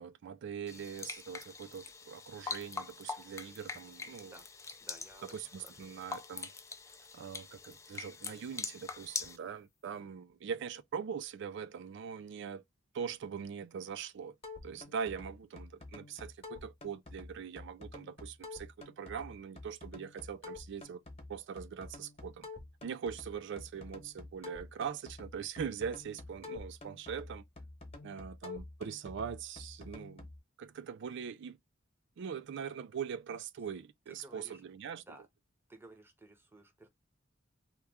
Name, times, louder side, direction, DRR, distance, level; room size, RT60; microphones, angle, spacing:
voice 1, 0.0-4.3 5.3-6.5 7.1-12.6 12.9-14.4 14.6-21.0 21.3-22.5 22.8-27.4 28.0-30.3 30.6-31.6 32.2-35.0, right 7 dB, 65° right, 0.4 m, -42 dB
sound 1, 0.7-9.4, left 4 dB, 15° left, 0.4 m, -44 dB
voice 2, 4.8-5.9 34.1-34.6 35.0-35.3 35.7-36.9, right 1 dB, 10° right, 0.7 m, -56 dB
sound 2, 14.4-30.4, left 3 dB, 30° left, 1.0 m, -49 dB
3.0 x 2.3 x 3.4 m
head